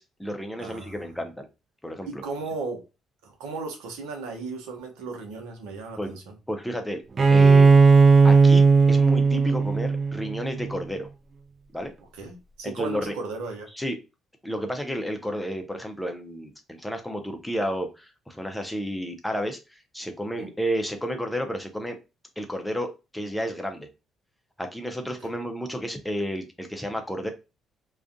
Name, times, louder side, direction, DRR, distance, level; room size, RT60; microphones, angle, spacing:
voice 1, 0.0-1.5 1.8-2.2 6.0-6.2 6.5-7.0 7.3-7.8 8.2-11.1 11.7-11.9 12.6-13.1 13.7-14.0 14.4-22.0 22.4-23.9 24.6-27.3, equal, 5° left, 5 dB, 0.6 m, -31 dB
voice 2, 0.6-1.0 2.1-2.8 3.2-6.4 12.2-13.7 20.3-20.5 25.2-25.3, right 3 dB, 85° right, 3 dB, 0.7 m, -36 dB
Bowed string instrument, 7.2-10.8, right 4 dB, 40° right, 0.3 m, -16 dB
2.4 x 2.3 x 2.5 m, 0.28 s
supercardioid pair, 65°, 0 cm